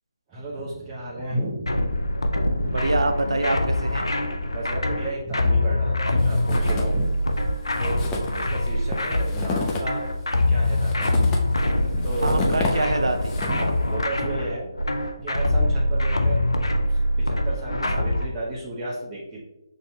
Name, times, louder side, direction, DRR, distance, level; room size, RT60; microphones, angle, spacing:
voice 1, 0.3-1.8 2.6-2.8 4.5-7.1 7.8-10.1 10.5-11.4 11.9-12.8 13.4-14.7 15.2-16.4 16.9-19.4, right 1 dB, 15° right, -7 dB, 0.7 m, -33 dB
sound 1, 1.7-18.3, left 1 dB, 90° left, 0.5 m, -24 dB
voice 2, 2.7-4.1 12.2-13.3, right 2 dB, 80° right, 7 dB, 0.5 m, -25 dB
sound 2, 6.2-7.1 7.4-7.5 7.7-13.8, left 3 dB, 15° left, 0.4 m, -31 dB
6.2 x 2.7 x 2.2 m, 0.97 s
figure-of-eight pair, 155°, 2 cm